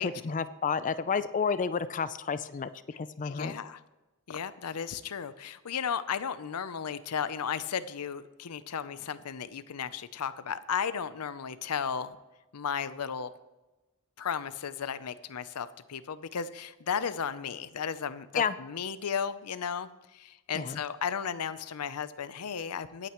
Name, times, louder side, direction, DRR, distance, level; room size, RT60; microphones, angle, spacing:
voice 1, 0.0-2.7 3.0-3.6 18.3-18.6 20.5-20.8, left 6 dB, 35° left, 14 dB, 0.4 m, -30 dB
voice 2, 3.2-3.8 4.3-12.2 12.5-13.3 14.2-23.1, left 7 dB, 90° left, 14 dB, 0.6 m, -34 dB
23.5 x 9.0 x 3.0 m, 1.1 s
head